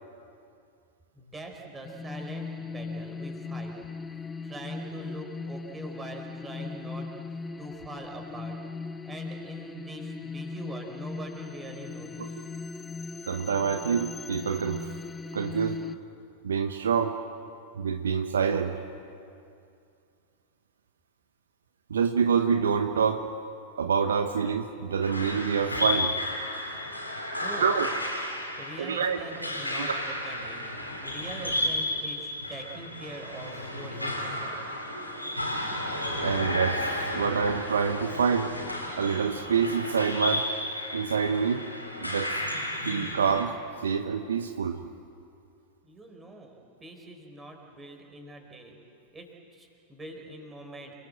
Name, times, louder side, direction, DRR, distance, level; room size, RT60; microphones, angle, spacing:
voice 1, 1.1-3.7 4.4-7.1 7.6-8.6 9.0-12.4 27.3-27.7 28.6-30.7 31.0-34.6 45.8-48.8 49.1-50.9, right 1 dB, 15° right, 2 dB, 4.9 m, -43 dB
sound 1, 1.8-16.0, left 4 dB, 15° left, 0.8 m, -39 dB
voice 2, 13.3-14.8 15.3-15.8 16.4-17.2 17.8-18.7 21.9-23.2 23.8-26.1 27.6-27.9 28.8-29.2 29.8-29.9 36.2-38.5 38.9-40.5 40.9-41.7 42.0-42.3 42.8-43.5 43.8-44.8, right 6 dB, 70° right, 8 dB, 1.0 m, -26 dB
sound 2, 25.0-43.4, left 1 dB, 85° left, 3.6 m, -33 dB
29.0 x 19.0 x 8.0 m, 2.5 s
figure-of-eight pair, 90°, 0 cm